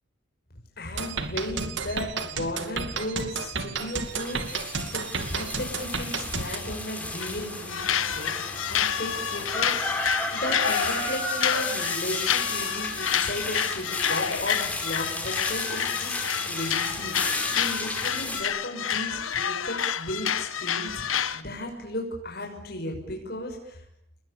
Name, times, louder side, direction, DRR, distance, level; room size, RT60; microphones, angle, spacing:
voice 1, 0.8-23.8, left 1 dB, 50° left, 1 dB, 6.2 m, -35 dB
sound 1, 1.0-6.6, right 5 dB, 65° right, 2.6 m, -32 dB
sound 2, 3.9-18.4, left 2 dB, 5° left, 4.9 m, -33 dB
sound 3, 7.2-7.4 7.7-21.4, left 8 dB, 85° left, 1.3 m, -29 dB
28.5 x 21.5 x 9.9 m, 0.74 s
head